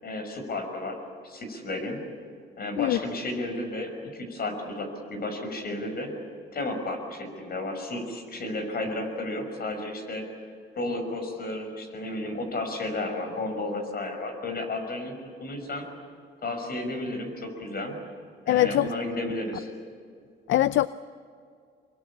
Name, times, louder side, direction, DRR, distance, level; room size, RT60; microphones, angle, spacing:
voice 1, 0.0-1.0 1.2-2.0 2.6-6.1 6.5-10.3 10.7-15.1 15.4-15.9 16.4-17.9 18.4-19.7, left 2 dB, 50° left, 5 dB, 6.0 m, -32 dB
voice 2, 18.5-18.9 20.5-20.9, left 14 dB, 70° left, 15 dB, 0.6 m, -22 dB
25.0 x 23.0 x 8.7 m, 2.3 s
cardioid pair, 90°, 20 cm